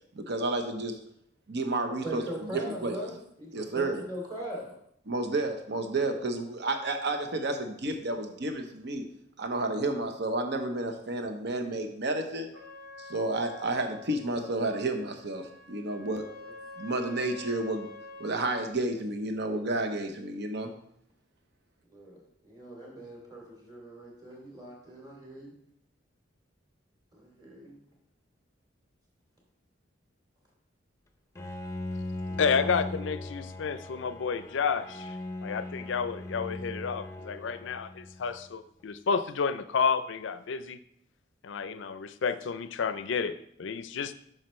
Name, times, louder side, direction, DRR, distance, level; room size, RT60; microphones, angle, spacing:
voice 1, 0.1-1.0 1.5-2.2 2.5-2.9 3.5-4.0 5.1-9.0 9.4-12.5 13.0-16.2 16.8-17.9 18.2-20.7, right 2 dB, 60° right, 6 dB, 0.9 m, -31 dB
voice 2, 2.0-3.1 3.4-4.8 16.4-16.5 21.9-25.5 27.1-27.8 32.3-32.7, equal, 25° right, -2 dB, 2.6 m, -41 dB
Trumpet, 12.5-18.7, left 2 dB, 80° right, 2.6 m, -47 dB
Bowed string instrument, 31.3-38.5, left 2 dB, 15° left, 0.6 m, -39 dB
voice 3, 32.4-35.2 35.4-40.8 41.4-44.1, left 5 dB, 65° left, 12 dB, 0.4 m, -30 dB
8.7 x 6.4 x 3.1 m, 0.71 s
head